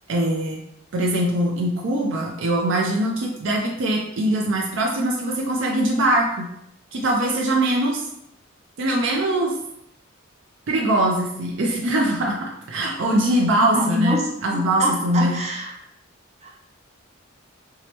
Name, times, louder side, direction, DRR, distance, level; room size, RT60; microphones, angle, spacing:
voice 1, 0.1-0.6 0.9-6.5 6.9-8.1 8.8-9.6 10.7-14.2 14.4-15.4, right 1 dB, 65° right, -1 dB, 0.4 m, -22 dB
voice 2, 13.4-14.2 14.8-15.7 16.4-16.5, equal, 35° right, -2 dB, 0.8 m, -25 dB
4.6 x 2.0 x 2.8 m, 0.79 s
head